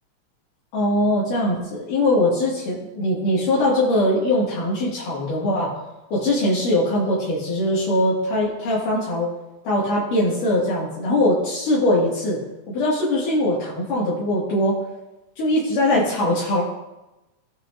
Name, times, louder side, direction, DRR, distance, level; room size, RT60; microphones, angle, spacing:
voice 1, 0.7-5.7 6.1-9.3 9.6-12.4 12.7-14.8 15.4-16.6, left 1 dB, 80° left, -8 dB, 4.1 m, -21 dB
19.0 x 6.7 x 2.8 m, 0.99 s
omnidirectional pair, 3.6 m